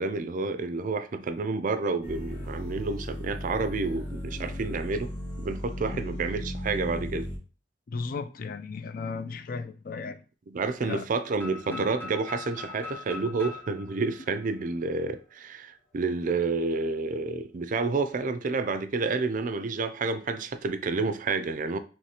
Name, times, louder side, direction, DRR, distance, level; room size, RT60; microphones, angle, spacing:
voice 1, 0.0-5.1 5.4-7.3 10.5-21.8, right 3 dB, 45° right, 0.4 m, -29 dB
sound 1, 2.0-7.4, equal, 30° left, 1.6 m, -36 dB
voice 2, 7.9-10.2 10.8-11.1 11.7-11.9, left 4 dB, 50° left, 0.4 m, -35 dB
sound 2, 11.4-15.2, left 3 dB, 10° left, 1.3 m, -42 dB
4.9 x 3.1 x 2.8 m
head